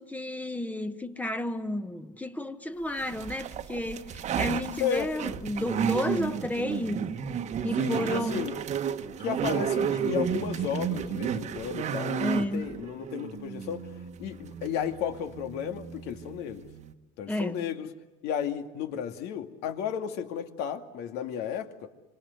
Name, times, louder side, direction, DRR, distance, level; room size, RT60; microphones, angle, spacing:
voice 1, 0.0-7.1 7.6-8.4 9.8-10.0 12.2-12.7 17.3-17.6, left 1 dB, 10° left, 1.3 m, -32 dB
sound 1, 3.0-16.9, right 8 dB, 40° right, 1.4 m, -32 dB
voice 2, 7.8-8.6 9.2-13.9 14.2-16.7 17.2-17.9 18.2-21.9, left 9 dB, 65° left, 2.5 m, -33 dB
26.0 x 25.5 x 7.9 m
cardioid pair, 130°, 18 cm